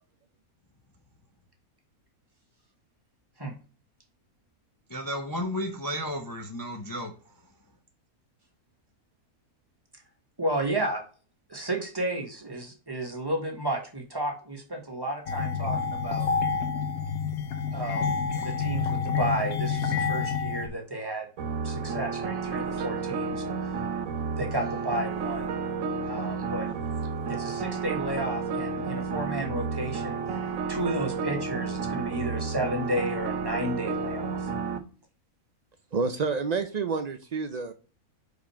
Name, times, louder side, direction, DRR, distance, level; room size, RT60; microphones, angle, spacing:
voice 1, 4.9-7.4, equal, 20° left, 3 dB, 0.6 m, -33 dB
voice 2, 10.4-11.0 11.5-16.3 17.7-21.3 21.6-23.7 24.4-25.6 26.1-26.7 27.3-30.4 30.7-34.5, right 1 dB, 15° right, 2 dB, 1.4 m, -32 dB
sound 1, 15.3-20.7, left 5 dB, 75° left, 1.3 m, -28 dB
sound 2, 21.4-34.8, right 5 dB, 70° right, 1.2 m, -31 dB
voice 3, 35.9-37.7, right 4 dB, 90° right, 7 dB, 0.3 m, -29 dB
4.9 x 4.6 x 5.6 m, 0.36 s
omnidirectional pair, 1.5 m